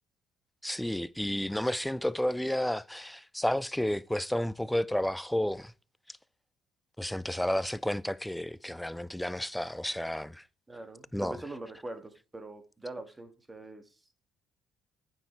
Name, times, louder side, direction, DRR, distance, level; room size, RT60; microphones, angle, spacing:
voice 1, 0.6-5.7 6.1-6.2 7.0-10.5 11.1-11.4, left 1 dB, 5° left, 0.4 m, -31 dB
voice 2, 10.7-14.0, right 2 dB, 20° right, 1.9 m, -43 dB
9.2 x 6.4 x 4.6 m
hypercardioid pair, 60°, 0 cm